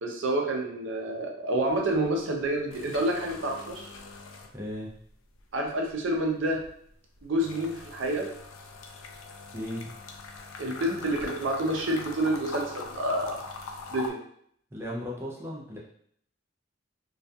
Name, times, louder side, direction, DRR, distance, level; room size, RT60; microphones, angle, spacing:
voice 1, 0.0-3.9 5.5-6.6 7.2-8.3 10.6-13.4 13.9-14.2, right 1 dB, 65° right, 1 dB, 0.5 m, -28 dB
sound 1, 1.7-2.1 2.4-5.0 5.3-14.1, left 4 dB, 85° left, 0.4 m, -43 dB
voice 2, 4.5-4.9 9.5-9.9 14.7-15.8, left 1 dB, 10° right, -4 dB, 0.3 m, -36 dB
2.3 x 2.2 x 2.6 m, 0.65 s
head